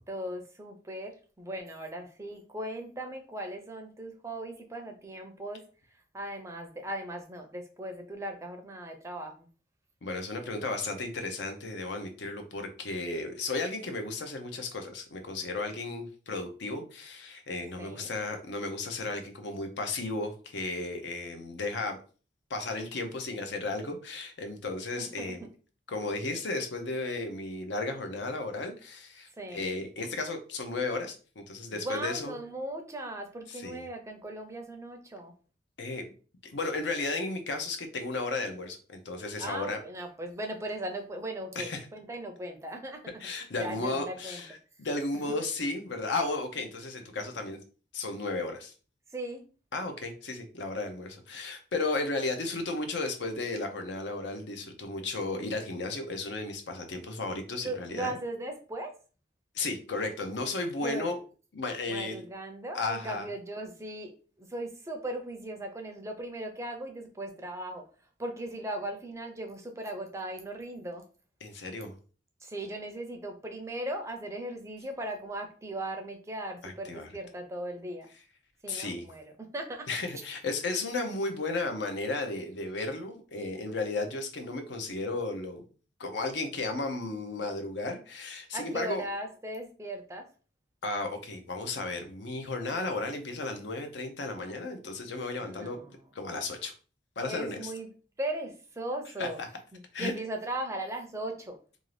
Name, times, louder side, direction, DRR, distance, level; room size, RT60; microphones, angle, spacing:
voice 1, 0.1-5.6 6.1-9.5 17.8-18.1 25.0-25.5 29.4-29.6 31.7-35.3 39.4-43.0 43.6-44.4 45.3-45.4 49.1-49.4 57.6-58.9 60.8-61.1 61.9-64.1 64.4-67.8 68.2-71.0 72.4-78.1 78.6-79.9 88.5-90.3 95.4-95.9 97.3-97.9 98.2-99.4 99.7-101.6, right 1 dB, 15° right, 4 dB, 0.4 m, -38 dB
voice 2, 10.0-22.0 22.5-25.4 25.9-32.4 33.5-33.9 35.8-36.1 36.4-39.8 41.6-41.9 43.2-47.6 47.9-48.7 49.7-58.2 59.5-61.2 61.5-62.2 62.7-63.3 71.4-71.9 76.6-77.1 78.7-79.1 79.9-85.7 86.0-89.0 90.8-95.8 96.1-96.7 97.2-97.7 99.2-99.5 99.9-100.1, left 3 dB, 75° left, 6 dB, 0.6 m, -34 dB
2.6 x 2.4 x 3.2 m, 0.37 s
head